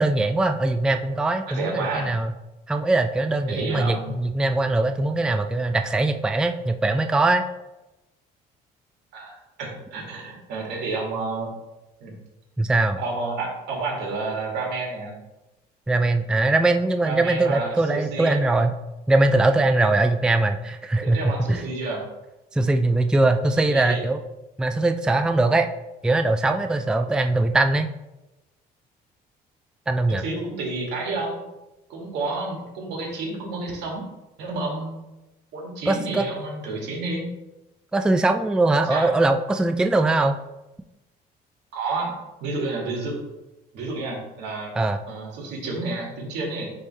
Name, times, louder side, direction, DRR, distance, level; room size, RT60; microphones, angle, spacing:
voice 1, 0.0-2.3 2.7-7.4 12.6-13.0 15.9-18.7 19.1-21.6 22.5-24.2 24.6-25.7 26.0-27.9 29.9-30.2 35.9-36.3 37.9-40.4 44.8-45.0, right 2 dB, 5° right, 7 dB, 0.3 m, -21 dB
voice 2, 1.5-2.1 3.5-4.2 9.1-9.3 9.6-11.5 12.0-12.1 13.0-15.2 17.0-18.4 21.0-22.0 23.5-24.0 30.1-31.4 31.9-34.0 34.4-35.0 35.5-37.3 38.9-39.1 41.7-43.2 43.7-44.7 45.1-46.7, right 3 dB, 85° right, -2 dB, 2.2 m, -30 dB
9.7 x 3.5 x 3.2 m, 1.0 s
cardioid pair, 110°, 17 cm